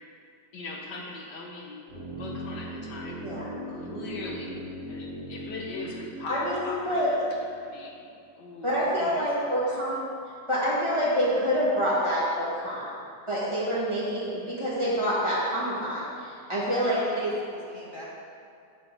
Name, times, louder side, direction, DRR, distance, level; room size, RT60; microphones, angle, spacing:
voice 1, 0.5-1.8 2.2-4.6 4.9-8.1 8.4-9.8, left 2 dB, 75° left, -1 dB, 1.7 m, -40 dB
sound 1, 1.9-7.9 8.2-8.3, equal, 60° right, 2.8 m, -39 dB
voice 2, 6.3-7.1 8.6-10.0 10.5-12.9 13.3-17.3, equal, 15° right, -9 dB, 2.1 m, -27 dB
voice 3, 16.6-18.0, equal, 30° left, -6 dB, 1.4 m, -44 dB
8.3 x 8.0 x 4.0 m, 2.4 s
omnidirectional pair, 1.8 m